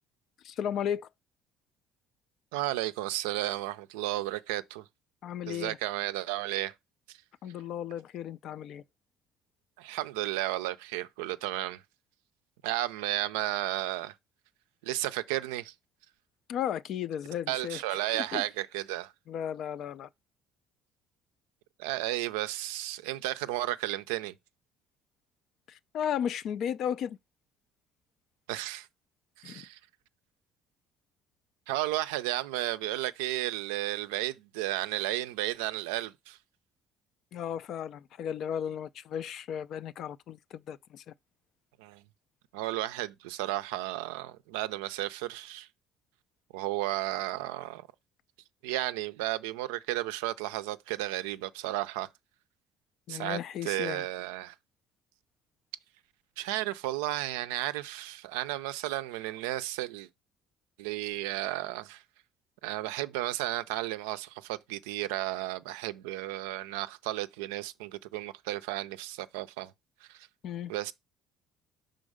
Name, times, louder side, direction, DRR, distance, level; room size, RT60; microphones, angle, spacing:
voice 1, 0.4-1.1 5.2-5.8 7.4-8.8 16.5-17.8 18.1-18.4 19.3-20.1 25.7-27.2 29.4-29.6 37.3-41.0 53.1-54.0 70.4-70.7, left 9 dB, 60° left, 0.4 m, -35 dB
voice 2, 2.5-4.8 5.5-6.7 7.1-7.2 9.8-11.8 12.6-14.1 14.8-15.7 17.5-19.1 21.8-24.3 28.5-28.9 29.4-29.8 31.7-36.4 41.8-42.0 42.5-45.7 46.5-47.9 48.6-52.1 53.1-54.5 56.4-60.1 60.8-62.0 62.6-69.7 70.0-70.3 70.7-70.9, right 16 dB, 85° right, 0.4 m, -33 dB
5.3 x 3.8 x 4.9 m
hypercardioid pair, 70°, 0 cm